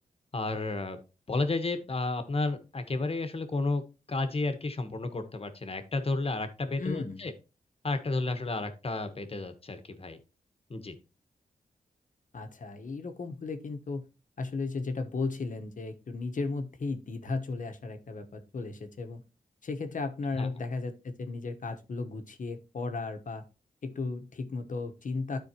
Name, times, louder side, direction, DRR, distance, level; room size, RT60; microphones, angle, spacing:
voice 1, 0.3-1.0 1.3-7.3 7.8-10.2 10.7-10.9 20.3-20.5, left 2 dB, 40° left, 9 dB, 1.3 m, -32 dB
voice 2, 6.8-7.2 12.3-14.0 14.4-19.2 19.6-23.4 23.8-25.4, left 3 dB, 60° left, 6 dB, 1.2 m, -35 dB
12.5 x 4.4 x 2.9 m, 0.30 s
cardioid pair, 75°, 15 cm